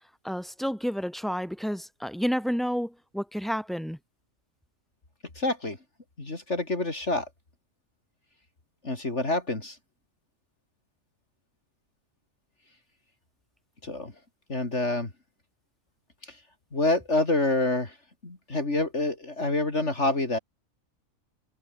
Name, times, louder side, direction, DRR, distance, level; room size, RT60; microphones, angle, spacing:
voice 1, 0.2-4.0, equal, ahead, 7.9 m, -30 dB
voice 2, 5.4-5.8 6.2-7.3 8.8-9.8 13.8-14.1 14.5-15.1 16.2-16.4 16.7-18.0 18.2-20.4, left 2 dB, 55° left, 4.2 m, -27 dB
omnidirectional pair, 1.4 m